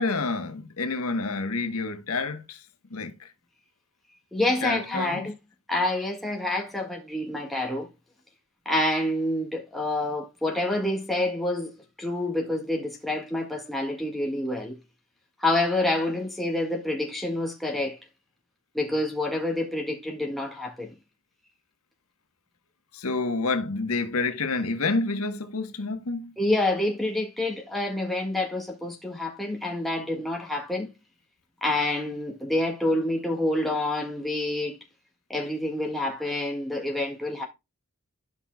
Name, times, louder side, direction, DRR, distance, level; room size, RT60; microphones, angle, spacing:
voice 1, 0.0-2.6 2.9-3.3 4.6-5.2 22.9-26.3, left 3 dB, 80° left, 1.2 m, -28 dB
voice 2, 4.3-5.3 5.7-7.9 8.6-11.7 12.0-14.7 15.4-18.0 18.7-20.9 26.4-30.9 31.6-34.8 35.3-37.5, left 1 dB, ahead, 1.7 m, -27 dB
12.5 x 5.7 x 2.2 m
head